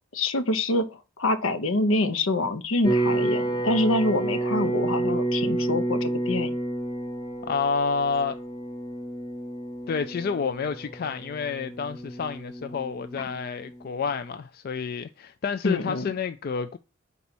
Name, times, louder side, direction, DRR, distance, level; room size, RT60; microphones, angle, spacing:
voice 1, 0.1-6.5 15.6-16.1, left 2 dB, 75° left, 0.9 m, -25 dB
sound 1, 2.8-13.9, right 2 dB, 20° left, 1.2 m, -30 dB
voice 2, 7.5-8.4 9.9-16.8, left 5 dB, 45° left, 0.3 m, -29 dB
5.4 x 4.1 x 6.0 m
head